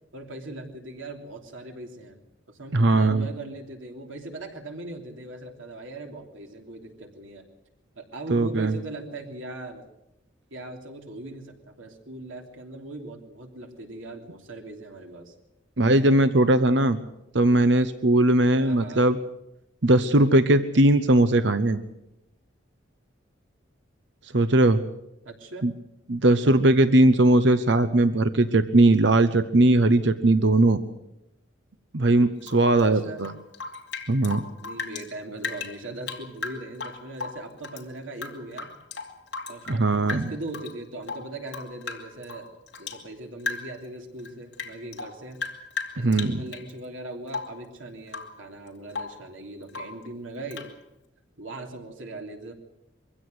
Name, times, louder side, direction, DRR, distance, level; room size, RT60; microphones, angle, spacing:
voice 1, 0.1-2.2 2.5-7.5 7.9-9.8 10.5-15.3 18.6-19.1 25.2-25.7 32.7-33.2 34.6-38.7 39.5-42.5 42.8-45.4 45.9-50.7 51.4-52.5, right 2 dB, 90° right, 3 dB, 3.1 m, -39 dB
voice 2, 2.7-3.3 8.3-8.7 15.8-17.0 17.3-19.2 19.8-21.8 24.3-24.8 25.6-25.7 26.1-30.8 31.9-33.3 34.1-34.4 39.7-40.3 46.0-46.4, right 2 dB, 65° right, 11 dB, 0.9 m, -19 dB
Rain / Drip, 32.4-35.1 35.4-37.8 38.1-39.8 40.1-40.7 41.0-43.0 43.4-43.9 44.2-46.7 47.3-47.6 48.1-48.4 48.7-49.2 49.7-50.0 50.5-50.7, left 4 dB, 60° left, 2.8 m, -36 dB
23.5 x 16.0 x 7.9 m, 0.86 s
head